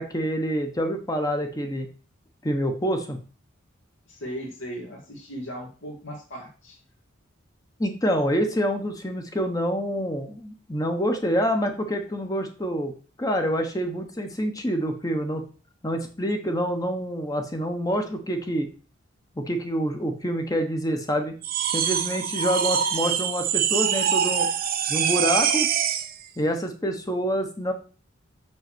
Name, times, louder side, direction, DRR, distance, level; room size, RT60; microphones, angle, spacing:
voice 1, 0.0-1.9 2.4-3.2 7.8-12.9 13.2-15.4 15.8-18.7 19.4-21.4 21.7-24.5 24.9-25.7 26.4-27.7, equal, 15° left, 5 dB, 1.0 m, -26 dB
voice 2, 4.1-6.8, equal, 70° left, -2 dB, 1.8 m, -37 dB
sound 1, 21.4-26.1, right 8 dB, 45° right, 0.7 m, -24 dB
6.2 x 5.5 x 6.1 m, 0.38 s
head